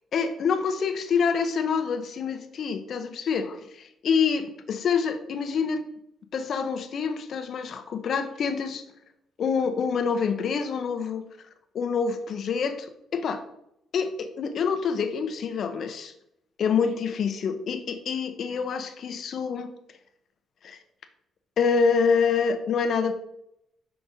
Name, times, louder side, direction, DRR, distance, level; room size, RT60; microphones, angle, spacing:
voice 1, 0.1-5.8 6.3-8.8 9.4-11.2 11.7-13.4 13.9-16.1 16.6-19.7 20.6-20.8 21.6-23.1, left 6 dB, 60° left, 8 dB, 0.7 m, -26 dB
5.9 x 4.9 x 4.0 m, 0.80 s
cardioid pair, 90°, 0 cm